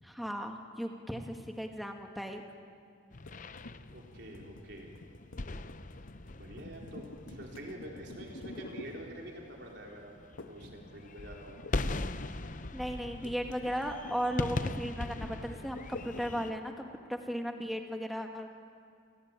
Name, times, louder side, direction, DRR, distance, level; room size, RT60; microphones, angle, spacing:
voice 1, 0.0-2.4 12.7-18.5, equal, ahead, 3 dB, 1.8 m, -36 dB
sound 1, 3.1-16.5, left 2 dB, 40° left, 0.7 m, -41 dB
sound 2, 3.3-9.6 10.4-10.8 11.0-16.7, left 2 dB, 80° left, 1.3 m, -50 dB
voice 2, 3.9-4.9 6.3-11.7, right 1 dB, 60° right, -1 dB, 4.5 m, -46 dB
29.5 x 18.0 x 9.0 m, 2.3 s
head